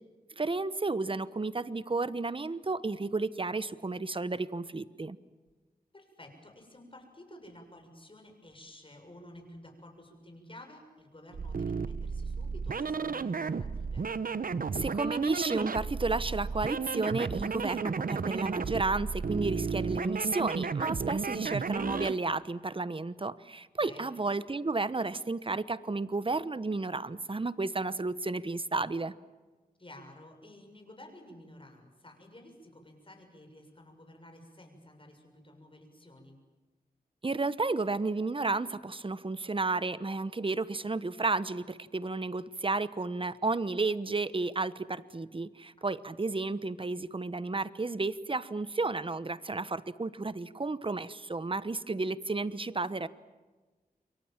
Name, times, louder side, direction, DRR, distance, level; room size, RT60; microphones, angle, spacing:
voice 1, 0.4-5.2 14.7-29.1 37.2-53.1, right 3 dB, 35° right, 16 dB, 1.1 m, -32 dB
voice 2, 5.9-14.1 23.8-24.1 29.8-36.4, left 1 dB, 35° left, 4 dB, 6.9 m, -52 dB
sound 1, 11.3-22.2, right 5 dB, 65° right, 1.0 m, -33 dB
28.0 x 23.0 x 7.5 m, 1.3 s
cardioid pair, 60°, 16 cm